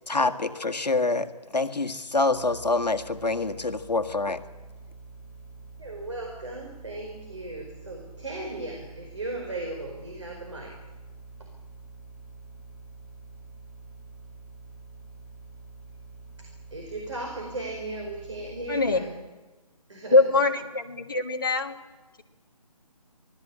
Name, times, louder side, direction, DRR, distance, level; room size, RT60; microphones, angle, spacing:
voice 1, 0.1-4.4, left 3 dB, 80° left, 7 dB, 1.7 m, -26 dB
sound 1, 2.3-18.9, right 3 dB, 5° left, 3.2 m, -47 dB
voice 2, 5.8-10.7 16.7-19.1 19.9-20.2, right 2 dB, 45° right, 1 dB, 5.0 m, -36 dB
voice 3, 20.1-21.7, left 3 dB, 30° left, 2 dB, 1.6 m, -22 dB
25.5 x 18.0 x 8.7 m, 1.2 s
figure-of-eight pair, 180°, 21 cm